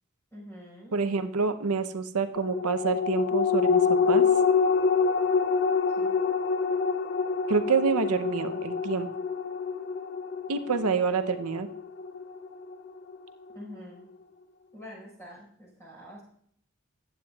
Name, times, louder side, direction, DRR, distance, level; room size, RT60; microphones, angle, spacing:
voice 1, 0.3-1.3 6.0-6.1 10.8-11.1 13.5-14.0 14.7-16.2, left 1 dB, 10° left, -5 dB, 4.8 m, -46 dB
voice 2, 0.9-4.3 7.5-9.1 10.5-11.7, right 5 dB, 90° right, 9 dB, 0.7 m, -27 dB
sound 1, 2.4-13.2 13.6-13.7, left 5 dB, 50° left, 0.5 m, -26 dB
15.0 x 9.3 x 2.3 m, 0.66 s
head